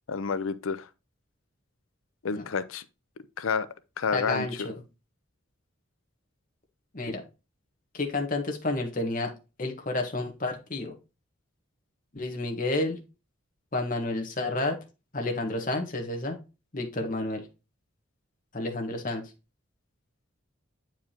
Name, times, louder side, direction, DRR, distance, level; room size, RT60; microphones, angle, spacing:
voice 1, 0.1-0.9 2.2-2.8 3.4-3.7 4.0-4.7, left 5 dB, 85° left, 0.5 m, -29 dB
voice 2, 4.1-4.7 6.9-7.2 7.9-9.3 9.6-10.9 12.1-13.0 13.7-14.8 15.1-16.4 16.7-17.5 18.5-19.3, left 2 dB, 40° left, 1.3 m, -30 dB
8.6 x 4.7 x 2.9 m
head